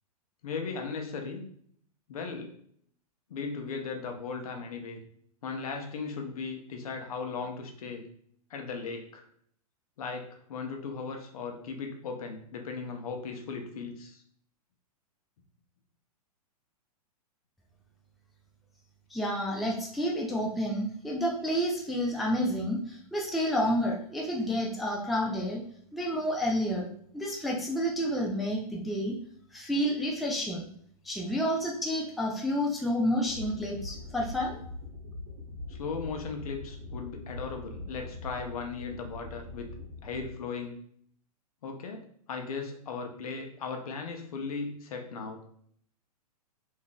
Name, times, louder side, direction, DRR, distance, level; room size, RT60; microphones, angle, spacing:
voice 1, 0.4-1.5 2.1-2.6 3.3-5.0 5.4-8.1 8.5-9.2 10.0-14.2 35.7-39.7 40.0-40.8 41.6-45.4, left 4 dB, 65° left, 4 dB, 0.7 m, -37 dB
voice 2, 19.1-25.6 25.9-26.9 27.1-29.1 29.5-30.7 31.0-34.6, equal, ahead, -2 dB, 0.3 m, -30 dB
sound 1, 33.3-40.3, left 2 dB, 50° right, 0.9 m, -42 dB
3.7 x 2.6 x 2.3 m, 0.63 s
hypercardioid pair, 115°, 20 cm